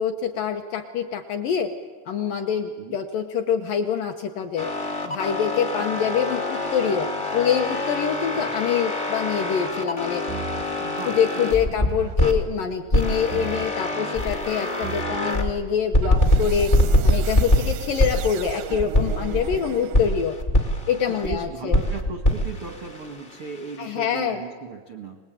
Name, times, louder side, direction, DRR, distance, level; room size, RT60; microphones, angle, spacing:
voice 1, 0.0-1.7 2.1-4.7 5.0-10.2 11.1-20.4 20.9-21.8 23.8-24.4, left 7 dB, 70° left, 4 dB, 2.1 m, -25 dB
sound 1, 4.6-12.4 12.9-15.5 15.9-19.6 19.9-21.4 21.7-23.8, left 1 dB, 40° left, 0.7 m, -24 dB
sound 2, 10.3-10.8 11.8-12.4 13.3-13.9 14.8-15.4 16.0-20.4, right 12 dB, 85° right, 3.1 m, -36 dB
voice 2, 10.8-11.8 21.1-25.2, right 4 dB, 65° right, 4 dB, 1.3 m, -36 dB
25.0 x 20.5 x 9.1 m, 1.4 s
omnidirectional pair, 5.0 m